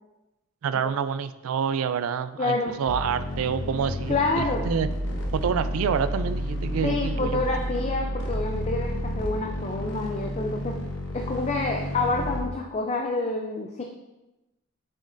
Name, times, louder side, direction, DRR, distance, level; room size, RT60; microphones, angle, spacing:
voice 1, 0.6-4.9 5.3-7.5, right 7 dB, 85° right, 12 dB, 0.4 m, -27 dB
voice 2, 2.4-2.7 4.1-4.7 6.8-10.7 11.1-13.8, left 3 dB, 30° left, 2 dB, 0.4 m, -28 dB
sound 1, 2.9-12.4, equal, 60° left, 1.1 m, -31 dB
6.4 x 6.3 x 2.6 m, 1.0 s
head